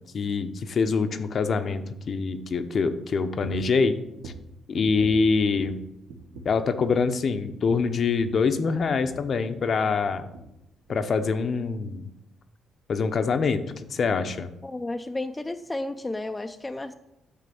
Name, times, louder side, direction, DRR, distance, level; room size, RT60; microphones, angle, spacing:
voice 1, 0.1-4.0 4.2-4.3 4.7-5.8 6.4-10.2 10.9-12.1 12.9-13.6 13.9-14.5, left 4 dB, 50° left, 9 dB, 0.7 m, -25 dB
sound 1, 3.4-3.8 4.2-5.8 6.1-6.6 6.9-7.1 7.4-9.8 10.1-10.6 10.9-11.1 11.4-11.5, right 2 dB, 75° right, 1.2 m, -43 dB
voice 2, 14.6-16.9, left 2 dB, 15° left, 7 dB, 0.4 m, -32 dB
9.3 x 3.3 x 6.9 m, 0.85 s
cardioid pair, 90°, 0 cm